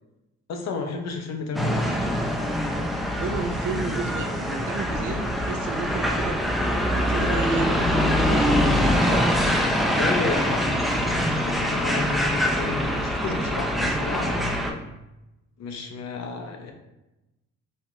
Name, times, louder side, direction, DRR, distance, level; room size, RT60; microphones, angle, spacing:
voice 1, 0.5-2.3 10.0-14.6 15.6-16.7, left 4 dB, 60° left, 4 dB, 0.7 m, -32 dB
sound 1, 1.6-14.7, equal, ahead, 0.4 m, -24 dB
voice 2, 3.2-9.2, right 4 dB, 90° right, 3 dB, 0.6 m, -33 dB
4.3 x 2.3 x 2.9 m, 0.97 s
cardioid pair, 90°, 30 cm